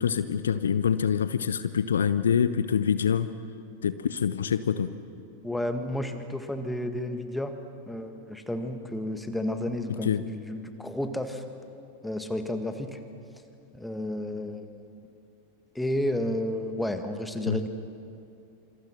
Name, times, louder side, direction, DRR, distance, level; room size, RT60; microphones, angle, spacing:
voice 1, 0.0-3.3 3.8-4.9 10.0-10.2 17.5-17.6, left 7 dB, 65° left, 13 dB, 0.7 m, -25 dB
voice 2, 5.4-7.6 7.9-11.4 12.0-13.0 13.7-14.7 15.8-17.7, left 1 dB, 5° left, 7 dB, 1.8 m, -31 dB
27.0 x 26.5 x 6.1 m, 2.6 s
figure-of-eight pair, 90°, 0 cm